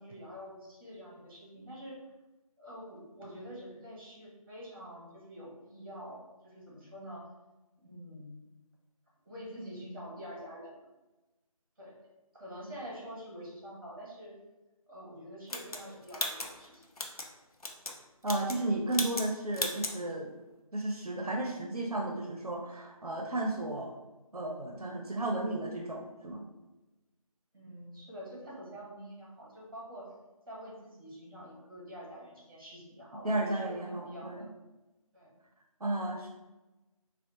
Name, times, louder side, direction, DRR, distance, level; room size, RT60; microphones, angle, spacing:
voice 1, 0.0-2.0 2.6-7.3 7.8-8.3 9.2-10.7 11.8-12.0 12.3-14.4 14.9-16.9 27.5-30.1 30.5-34.5 35.1-35.3, equal, 35° right, -4 dB, 1.1 m, -46 dB
sound 1, 15.5-17.3 17.6-18.0 18.2-18.6 18.9-19.3 19.5-20.0, left 2 dB, 80° left, 0.5 m, -36 dB
voice 2, 18.2-20.3 20.7-23.9 24.3-26.4 33.2-34.5 35.8-36.3, right 2 dB, 90° right, 0 dB, 0.5 m, -33 dB
3.4 x 2.0 x 2.8 m, 1.1 s
figure-of-eight pair, 160°, 19 cm